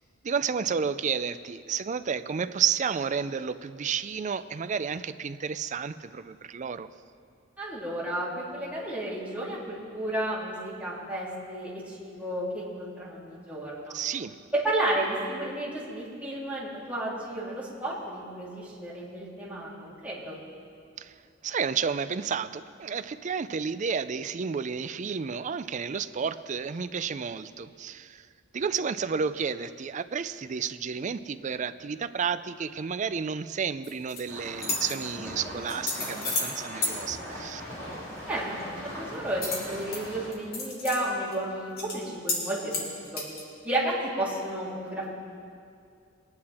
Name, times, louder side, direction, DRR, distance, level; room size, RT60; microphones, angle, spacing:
voice 1, 0.2-6.9 13.9-14.4 21.0-21.1 21.4-28.3 28.5-37.6, right 6 dB, 40° right, 13 dB, 0.4 m, -31 dB
voice 2, 7.6-13.9 14.5-20.4 38.3-43.2 43.6-45.1, right 1 dB, 10° right, -7 dB, 3.1 m, -32 dB
sound 1, 33.8-34.2 34.6-34.9 35.7-36.5 36.8-36.9 39.4-40.0 40.3-41.0 41.3-41.4 41.8-42.0 42.3-42.4 42.7-43.4, left 3 dB, 50° left, 2.8 m, -31 dB
sound 2, 34.3-40.3, equal, 15° left, 3.9 m, -40 dB
21.0 x 9.6 x 4.3 m, 2.3 s
head